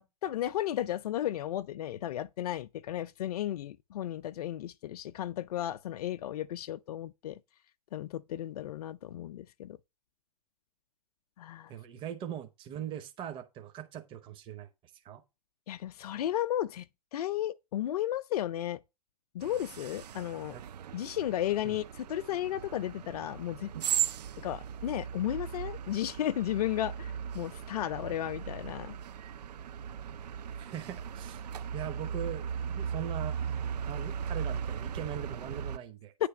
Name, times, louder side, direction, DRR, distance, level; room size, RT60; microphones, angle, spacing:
voice 1, 0.2-7.4 7.9-9.8 11.4-11.7 15.7-16.9 17.1-18.8 19.3-20.6 20.9-23.7 24.4-29.0, left 12 dB, 70° left, 0.5 m, -34 dB
voice 2, 11.7-14.7 15.0-15.2 20.5-20.6 21.6-21.7 30.6-31.5 31.7-33.4 33.8-36.1, right 9 dB, 25° right, 0.8 m, -41 dB
sound 1, 19.4-35.8, right 8 dB, 85° right, 0.5 m, -37 dB
9.6 x 3.3 x 6.8 m
hypercardioid pair, 125°, 20 cm